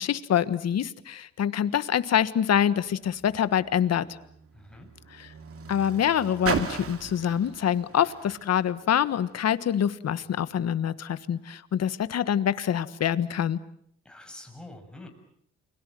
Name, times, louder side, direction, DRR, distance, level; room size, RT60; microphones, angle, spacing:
voice 1, 0.0-4.0 5.1-5.3 5.7-13.6, left 9 dB, 60° left, 14 dB, 1.5 m, -25 dB
Car, 2.8-9.4 10.2-10.3, right 6 dB, 50° right, 2.7 m, -37 dB
voice 2, 4.5-4.9 14.1-15.1, left 2 dB, 5° left, 3 dB, 6.9 m, -45 dB
29.5 x 22.5 x 7.7 m, 0.67 s
cardioid pair, 90°, 30 cm